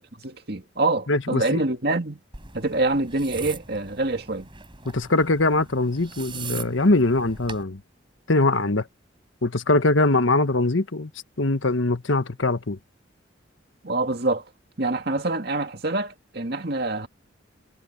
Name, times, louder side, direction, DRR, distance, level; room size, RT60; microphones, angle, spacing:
voice 1, 0.0-2.2 2.5-4.5 13.8-14.4 14.8-17.1, right 2 dB, 50° right, 2.3 m, -26 dB
voice 2, 1.1-1.6 4.8-7.8 8.3-8.9 9.4-11.1 11.4-12.8, left 2 dB, 75° left, 1.4 m, -22 dB
sound 1, 2.3-7.6, right 5 dB, 25° right, 4.9 m, -40 dB
head